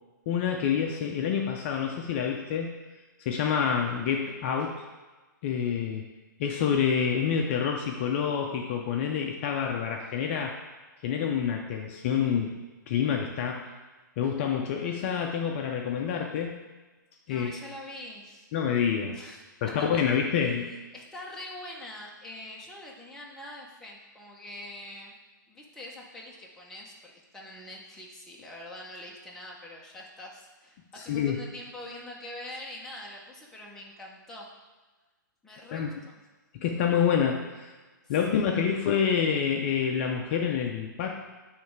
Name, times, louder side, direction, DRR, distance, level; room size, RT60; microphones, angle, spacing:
voice 1, 0.3-2.7 3.2-4.8 5.4-6.0 6.4-10.6 11.0-12.6 12.9-13.7 14.2-16.5 17.3-17.5 18.5-19.2 19.6-20.8 31.0-31.4 35.7-35.9 36.6-37.7 38.1-41.1, left 7 dB, 35° left, 2 dB, 0.5 m, -27 dB
voice 2, 17.3-18.5 19.1-20.0 20.4-20.5 20.9-25.1 25.5-34.5 35.4-36.2 38.1-38.8, left 1 dB, 5° left, -3 dB, 0.8 m, -44 dB
8.3 x 3.2 x 4.6 m, 1.3 s
hypercardioid pair, 150°, 11 cm